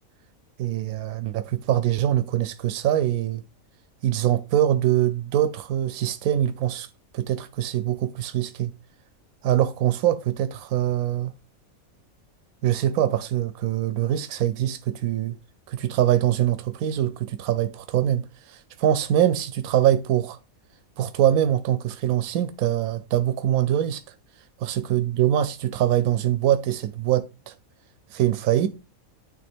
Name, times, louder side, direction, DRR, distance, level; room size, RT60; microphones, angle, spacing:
voice 1, 0.6-3.4 4.0-6.9 7.1-8.7 9.4-11.3 12.6-15.4 15.7-20.4 21.0-24.0 24.6-27.5 28.1-28.7, right 11 dB, 85° right, 1.1 m, -23 dB
9.2 x 3.4 x 3.4 m
omnidirectional pair, 1.5 m